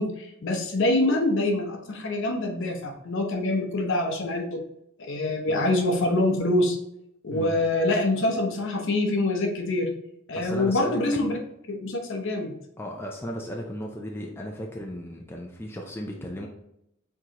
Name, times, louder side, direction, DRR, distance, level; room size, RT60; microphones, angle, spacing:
voice 1, 0.0-4.6 5.0-6.8 7.2-9.9 10.3-11.4 11.7-12.6, left 2 dB, 60° left, 3 dB, 0.8 m, -25 dB
voice 2, 7.3-7.6 10.4-11.0 12.8-16.5, equal, 10° left, 0 dB, 0.4 m, -35 dB
4.6 x 3.7 x 2.9 m, 0.81 s
head